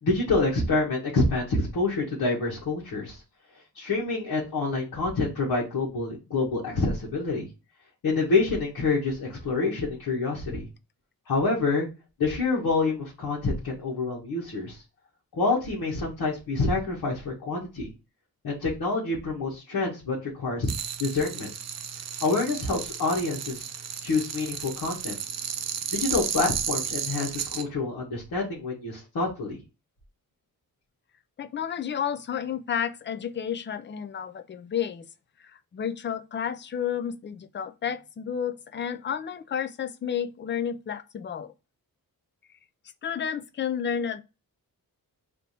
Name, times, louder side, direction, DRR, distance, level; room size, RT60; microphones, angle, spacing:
voice 1, 0.0-3.2 3.7-7.5 8.0-10.7 11.3-11.9 12.2-14.8 15.3-17.9 18.4-20.7 21.0-21.5 22.2-23.7 24.0-25.1 25.9-29.6, left 3 dB, 70° left, 1.3 m, -27 dB
sound 1, 20.6-27.6, right 8 dB, 50° right, 0.5 m, -33 dB
voice 2, 31.4-35.0 35.5-41.5 43.0-44.2, left 8 dB, 35° left, 0.4 m, -31 dB
3.4 x 2.7 x 4.1 m
wide cardioid pair, 135°, 36 cm